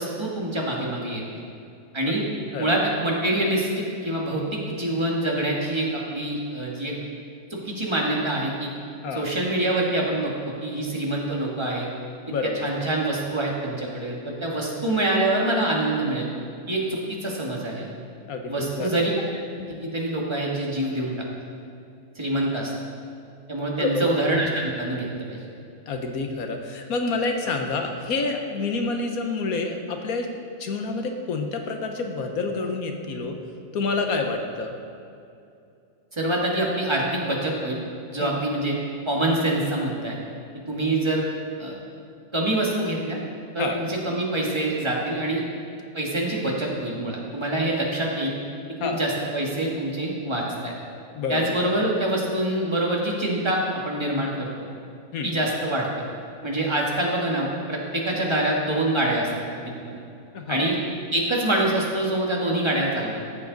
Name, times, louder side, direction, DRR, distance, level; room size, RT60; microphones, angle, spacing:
voice 1, 0.0-1.4 1.9-2.2 2.6-6.9 7.5-8.7 9.1-11.9 12.4-16.3 16.7-17.9 18.5-19.1 19.5-21.1 22.1-22.7 23.5-25.4 36.1-37.8 38.1-38.8 39.1-40.2 40.7-41.2 41.6-41.7 42.3-43.2 43.5-45.4 45.9-48.3 48.8-50.7 51.3-54.6 55.2-55.9 56.4-59.3 59.6-60.0 60.5-60.8 61.1-63.2, right 1 dB, 20° right, -3 dB, 1.6 m, -25 dB
voice 2, 12.3-12.7 18.3-19.0 23.8-24.2 25.9-30.3 30.6-33.4 33.7-34.7 38.2-38.3 43.6-43.8 48.8-49.0 51.1-51.5 55.1-55.3 60.3-60.7, left 3 dB, 75° left, 4 dB, 1.4 m, -28 dB
14.0 x 7.6 x 4.0 m, 2.6 s
omnidirectional pair, 1.6 m